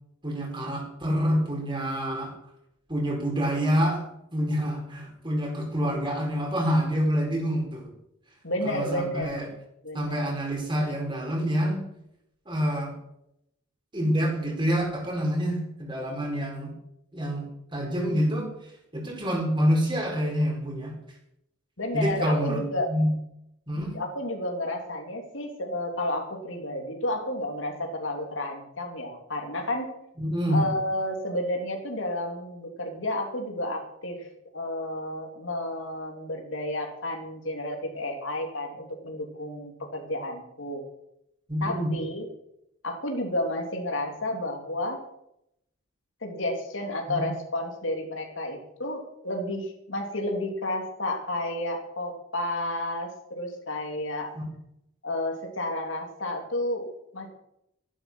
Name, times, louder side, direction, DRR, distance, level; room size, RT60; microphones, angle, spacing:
voice 1, 0.2-2.3 2.9-4.0 4.3-7.9 8.6-9.5 9.9-11.9 12.5-12.9 13.9-16.7 17.1-17.5 17.7-21.0 21.9-23.1 23.7-23.9 30.2-30.6 41.5-41.9 47.1-47.3 54.3-54.4, equal, 25° right, 1 dB, 4.6 m, -27 dB
voice 2, 8.4-9.5 9.8-10.2 21.8-22.9 23.8-29.9 30.5-34.3 34.5-40.8 41.6-42.3 42.8-45.0 46.2-54.3 55.0-56.9 57.1-57.3, left 1 dB, 70° left, 2 dB, 3.2 m, -31 dB
14.0 x 11.5 x 6.3 m, 0.78 s
head